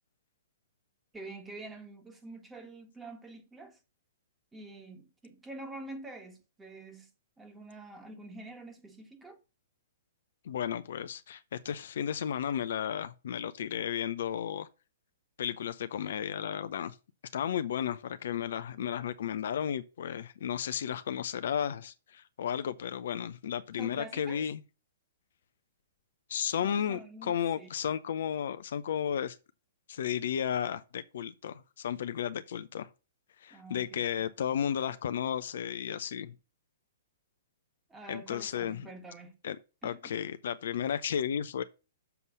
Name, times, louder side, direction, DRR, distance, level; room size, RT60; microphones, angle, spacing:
voice 1, 1.1-3.8 4.5-7.1 7.4-9.4 23.8-24.5 26.6-27.7 33.5-34.3 37.9-39.3 39.8-40.2, right 2 dB, 10° right, 1.6 m, -47 dB
voice 2, 10.4-14.7 15.4-17.0 17.3-24.6 26.3-29.4 29.9-32.9 33.4-36.3 38.1-38.9 39.4-39.6 39.8-41.6, left 9 dB, 60° left, 0.6 m, -33 dB
7.0 x 5.4 x 6.1 m
figure-of-eight pair, 115°, 0 cm